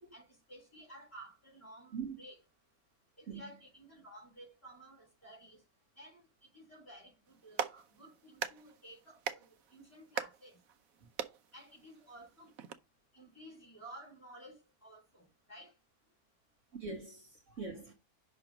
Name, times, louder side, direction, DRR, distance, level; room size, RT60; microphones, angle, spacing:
voice 1, 0.1-2.4 3.2-5.6 6.0-7.7 8.0-10.6 11.5-12.5 13.1-15.7, right 1 dB, 10° left, 3.7 m, -54 dB
Clapping, 7.3-12.7, right 8 dB, 70° right, 1.1 m, -43 dB
voice 2, 16.8-17.9, right 5 dB, 55° right, 1.5 m, -42 dB
5.7 x 4.0 x 6.0 m
omnidirectional pair, 1.6 m